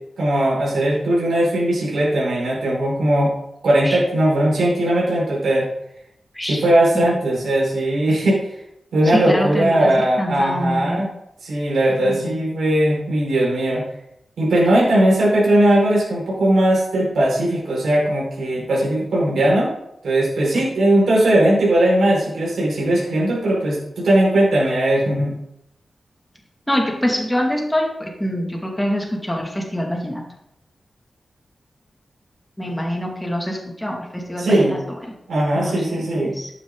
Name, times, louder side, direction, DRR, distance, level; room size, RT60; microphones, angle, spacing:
voice 1, 0.2-3.3 3.6-5.7 6.5-8.5 8.9-11.1 11.4-13.8 14.4-19.7 20.0-25.3 34.4-34.7 35.3-36.3, right 1 dB, 90° right, -5 dB, 4.9 m, -18 dB
voice 2, 9.1-11.0 12.0-12.3 20.6-20.7 26.7-30.2 32.6-34.8 35.5-36.5, equal, 5° left, 0 dB, 2.2 m, -25 dB
11.5 x 9.3 x 3.8 m, 0.79 s
wide cardioid pair, 155°, 0 cm